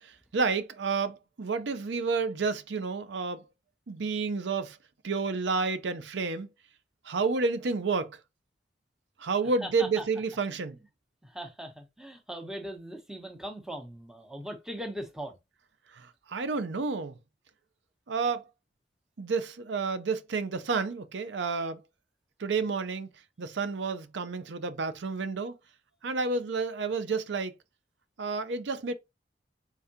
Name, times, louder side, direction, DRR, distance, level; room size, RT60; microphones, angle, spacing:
voice 1, 0.0-3.4 3.9-4.8 5.0-6.5 7.1-8.1 9.2-10.8 15.9-17.1 18.1-18.4 19.2-21.8 22.4-23.1 23.4-25.6 26.0-27.5 28.2-28.9, right 4 dB, 85° right, 0.6 m, -30 dB
voice 2, 9.4-10.1 11.2-15.4, equal, 5° right, 0.8 m, -40 dB
4.5 x 3.6 x 2.7 m
head